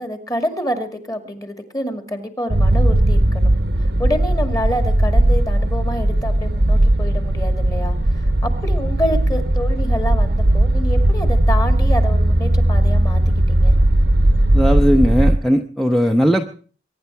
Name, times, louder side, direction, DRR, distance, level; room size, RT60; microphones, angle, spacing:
voice 1, 0.0-3.5 4.0-13.2 13.5-13.8, equal, 20° left, 7 dB, 2.1 m, -27 dB
sound 1, 2.5-15.4, right 1 dB, 70° right, 1.1 m, -17 dB
voice 2, 14.5-16.5, equal, ahead, 4 dB, 0.8 m, -17 dB
23.5 x 10.0 x 4.6 m, 0.40 s
head